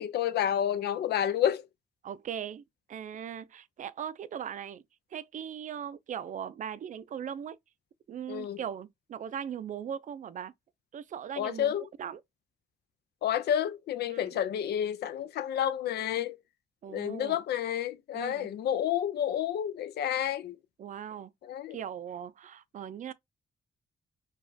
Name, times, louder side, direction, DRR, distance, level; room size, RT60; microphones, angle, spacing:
voice 1, 0.0-1.7 8.3-8.6 11.4-11.9 13.2-16.4 16.9-20.6 21.4-21.8, left 10 dB, 80° left, 0.5 m, -30 dB
voice 2, 2.0-2.6 2.9-4.8 5.1-7.6 8.1-10.5 10.9-11.7 12.0-12.2 14.1-14.4 16.8-17.4 18.1-18.5 20.8-21.3 21.7-23.1, right 8 dB, 50° right, 0.4 m, -39 dB
4.9 x 2.3 x 2.6 m
cardioid pair, 100°, 17 cm